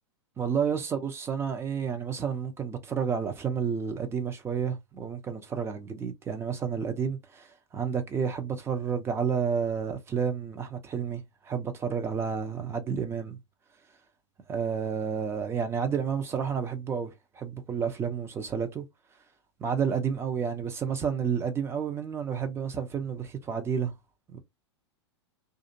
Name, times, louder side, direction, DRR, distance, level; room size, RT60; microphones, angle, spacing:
voice 1, 0.4-13.4 14.5-18.8 19.6-23.9 24.3-24.4, right 7 dB, 15° right, 0.6 m, -30 dB
2.4 x 2.4 x 2.7 m
figure-of-eight pair, 100°, 15 cm